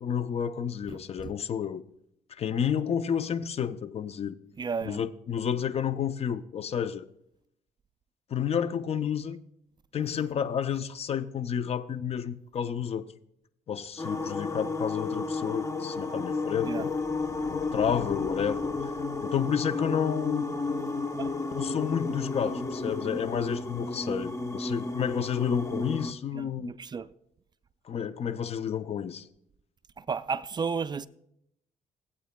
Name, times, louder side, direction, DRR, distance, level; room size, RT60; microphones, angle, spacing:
voice 1, 0.0-1.8 2.4-4.4 4.8-7.0 8.3-9.4 9.9-13.1 13.7-17.0 17.5-18.7 19.2-20.5 21.6-26.7 27.9-29.3, left 8 dB, 50° left, 0.5 m, -30 dB
voice 2, 4.6-5.0 16.6-16.9 21.2-21.3 26.3-27.1 30.0-31.1, right 5 dB, 30° right, 0.4 m, -33 dB
sound 1, 14.0-26.1, left 3 dB, 20° left, 0.8 m, -32 dB
18.0 x 8.4 x 2.2 m
cardioid pair, 75°, 14 cm